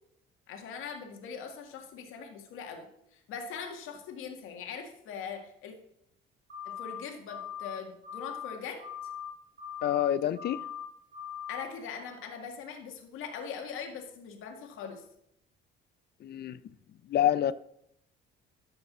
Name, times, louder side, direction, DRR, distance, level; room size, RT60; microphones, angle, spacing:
voice 1, 0.5-5.7 6.7-8.9 11.5-15.0, left 6 dB, 75° left, 2.1 m, -41 dB
sound 1, 6.5-7.0 7.3-7.7 8.0-8.5 8.8-9.3 9.6-10.1 10.3-10.8 11.1-11.6, left 9 dB, 45° right, 2.5 m, -40 dB
voice 2, 9.8-10.6 16.2-16.6 17.1-17.5, left 11 dB, 50° left, 0.6 m, -27 dB
13.0 x 5.2 x 6.2 m
cardioid pair, 90°, 21 cm